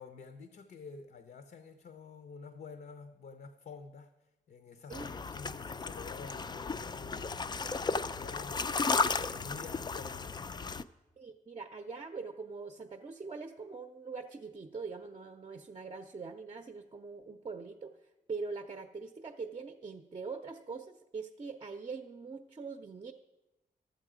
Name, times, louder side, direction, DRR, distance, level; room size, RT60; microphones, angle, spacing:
voice 1, 0.0-10.7, left 4 dB, 70° left, 8 dB, 0.7 m, -50 dB
sound 1, 4.9-10.8, left 4 dB, 30° left, 0.3 m, -34 dB
voice 2, 11.2-23.1, right 4 dB, 35° right, 6 dB, 0.6 m, -43 dB
12.0 x 7.9 x 4.9 m, 1.0 s
wide cardioid pair, 105°, 16 cm